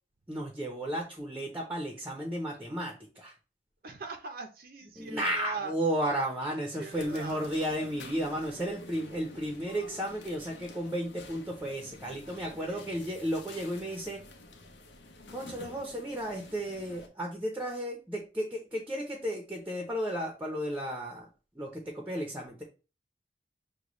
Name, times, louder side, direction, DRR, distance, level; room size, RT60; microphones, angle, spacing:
voice 1, 0.3-3.3 5.0-14.2 15.3-21.3 21.5-22.6, right 1 dB, 10° right, 1 dB, 0.7 m, -33 dB
voice 2, 3.8-5.7 6.0-6.2 6.7-7.4 12.5-12.9, right 4 dB, 55° right, 5 dB, 0.6 m, -41 dB
sound 1, 6.9-17.1, left 2 dB, 80° left, 0.7 m, -50 dB
6.3 x 2.3 x 3.0 m, 0.32 s
head